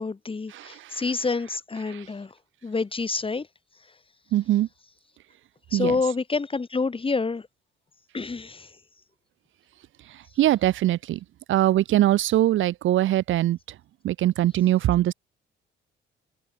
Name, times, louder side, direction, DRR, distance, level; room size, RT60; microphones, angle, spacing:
voice 1, 0.0-2.4 2.6-3.5 3.8-3.9 5.7-7.5 8.1-8.8, left 4 dB, 25° left, 2.8 m, -28 dB
voice 2, 4.3-4.7 5.7-5.9 10.4-11.2 11.5-13.6 14.0-15.1, right 13 dB, 75° right, 1.4 m, -21 dB
cardioid pair, 90°, 20 cm